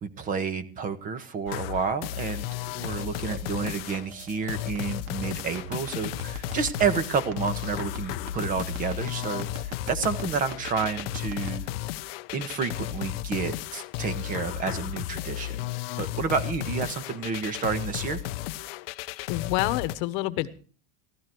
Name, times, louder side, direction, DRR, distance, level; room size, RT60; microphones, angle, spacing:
voice 1, 0.0-2.5 2.7-11.7 12.3-15.7 16.0-18.2, right 5 dB, 25° right, 12 dB, 1.4 m, -30 dB
sound 1, 1.5-19.9, left 16 dB, 75° left, 0.8 m, -34 dB
sound 2, 1.7-11.5, right 7 dB, 45° right, 2.1 m, -44 dB
voice 2, 19.3-20.5, left 17 dB, 60° left, 14 dB, 1.3 m, -27 dB
14.5 x 14.0 x 4.6 m, 0.40 s
supercardioid pair, 160°, 30 cm